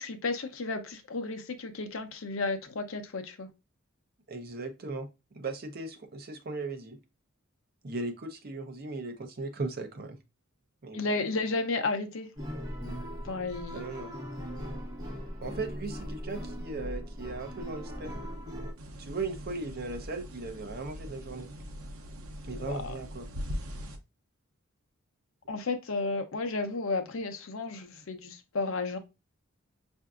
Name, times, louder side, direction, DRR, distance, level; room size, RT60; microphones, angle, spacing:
voice 1, 0.0-3.5 10.9-12.3 13.2-13.8 22.5-22.9 25.5-29.0, left 3 dB, 70° left, 0.7 m, -33 dB
voice 2, 4.3-5.1 5.3-7.0 7.8-10.2 10.8-11.1 13.7-14.1 15.4-18.1 19.0-21.5 22.5-23.3, right 3 dB, 45° right, 0.7 m, -37 dB
sound 1, 12.4-18.7, equal, 20° right, 1.1 m, -39 dB
sound 2, 18.8-24.0, equal, 85° right, 0.7 m, -41 dB
5.6 x 2.6 x 2.3 m
head